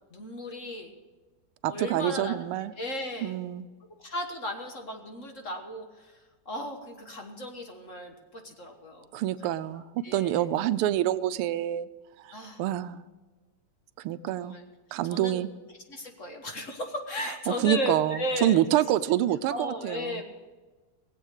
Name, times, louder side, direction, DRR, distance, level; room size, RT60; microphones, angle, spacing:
voice 1, 0.1-0.9 1.7-2.5 2.8-3.4 4.0-6.2 6.4-10.5 12.3-12.6 14.3-14.6 15.1-15.5 15.9-18.6 19.5-20.2, left 1 dB, 40° left, 4 dB, 1.4 m, -36 dB
voice 2, 1.6-2.7 3.2-3.7 9.1-11.9 12.2-13.0 14.0-14.6 14.9-15.5 17.6-20.2, right 13 dB, 85° right, 15 dB, 1.5 m, -27 dB
19.0 x 8.0 x 6.5 m, 1.3 s
omnidirectional pair, 2.4 m